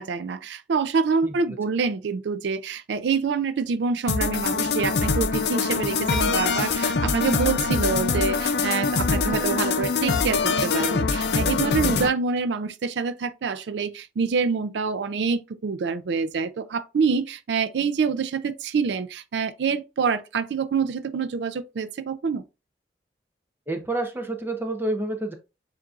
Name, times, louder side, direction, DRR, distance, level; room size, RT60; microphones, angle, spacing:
voice 1, 0.0-22.4, right 5 dB, 80° right, 0.4 m, -26 dB
sound 1, 4.1-12.1, left 4 dB, 70° left, 0.5 m, -24 dB
voice 2, 23.7-25.3, right 2 dB, 10° right, 0.6 m, -28 dB
7.2 x 2.6 x 2.4 m
head